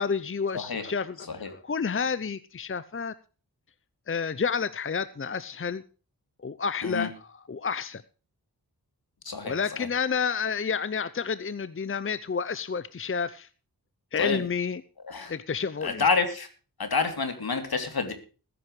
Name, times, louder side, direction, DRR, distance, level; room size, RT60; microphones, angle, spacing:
voice 1, 0.0-1.2 1.4-3.1 4.1-5.8 6.4-7.1 7.5-8.0 9.4-13.5 14.1-14.8 15.3-16.0, left 6 dB, 35° left, 0.7 m, -30 dB
voice 2, 1.2-1.5 6.8-7.1 9.2-9.9 14.2-14.4 15.0-15.3 15.8-16.5 16.8-18.1, left 4 dB, 70° left, 3.2 m, -28 dB
20.5 x 10.0 x 3.2 m
wide cardioid pair, 85°, 38 cm